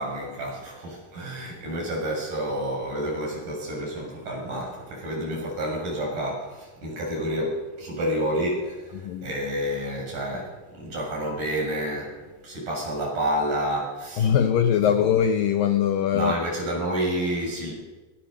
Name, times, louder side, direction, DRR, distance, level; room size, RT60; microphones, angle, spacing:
voice 1, 0.0-12.1 12.4-14.3 16.1-17.7, right 1 dB, 45° right, -2 dB, 8.4 m, -29 dB
voice 2, 8.9-9.3 14.2-16.4, left 8 dB, 80° left, 8 dB, 2.0 m, -22 dB
22.0 x 18.0 x 6.6 m, 1.2 s
omnidirectional pair, 5.1 m